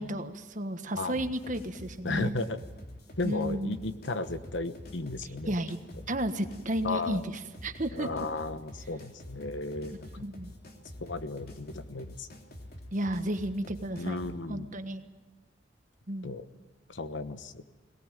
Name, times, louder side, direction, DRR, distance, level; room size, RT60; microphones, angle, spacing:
voice 1, 0.0-2.4 3.2-3.8 5.5-5.8 6.1-7.2 7.6-8.1 10.2-10.5 12.9-15.0 16.1-16.3, right 1 dB, 45° right, 8 dB, 1.4 m, -33 dB
sound 1, 1.1-14.4, left 1 dB, 55° left, 3.1 m, -47 dB
voice 2, 2.0-2.6 3.2-5.6 6.8-7.2 7.9-10.3 11.0-12.3 14.0-14.7 16.2-16.4 16.9-17.6, left 2 dB, 85° left, 11 dB, 1.2 m, -34 dB
22.0 x 18.5 x 9.1 m, 1.2 s
head